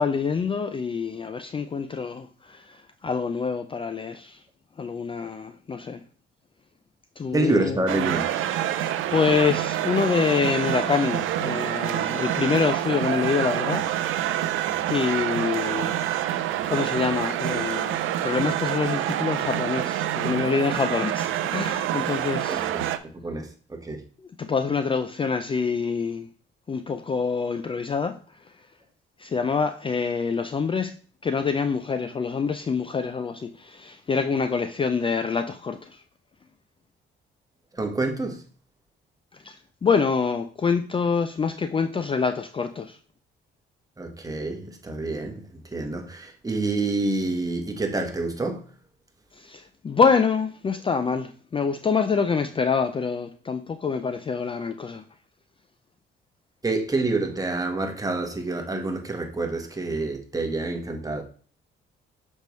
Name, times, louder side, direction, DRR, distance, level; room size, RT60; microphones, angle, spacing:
voice 1, 0.0-4.4 4.8-6.0 7.2-7.8 8.8-13.8 14.9-16.0 16.3-18.0 18.2-22.7 24.2-26.3 26.7-28.7 29.2-31.0 31.2-36.0 39.3-43.0 49.3-55.0, left 5 dB, 25° left, 0.4 m, -26 dB
voice 2, 7.3-8.2 22.5-22.8 23.2-24.0 37.7-38.4 44.0-48.6 56.6-61.2, right 2 dB, 20° right, 1.3 m, -27 dB
sound 1, 7.9-23.0, right 12 dB, 85° right, 0.5 m, -27 dB
6.6 x 5.3 x 3.1 m
cardioid pair, 90°, 20 cm